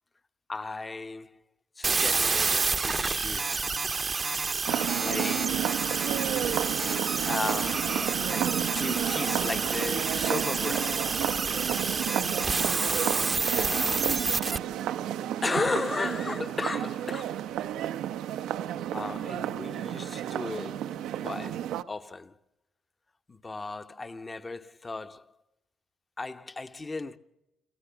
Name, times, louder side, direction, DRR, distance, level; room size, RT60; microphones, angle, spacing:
voice 1, 0.5-1.4 1.8-3.7 4.9-5.8 6.9-11.2 13.5-14.4 15.4-17.5 18.9-22.3 23.3-25.3 26.2-27.2, left 3 dB, 25° left, 0.9 m, -36 dB
sound 1, 1.8-14.6, right 4 dB, 30° right, 0.7 m, -29 dB
sound 2, 4.7-21.8, right 11 dB, 90° right, 0.7 m, -32 dB
26.5 x 14.5 x 6.9 m
cardioid pair, 90°, 0 cm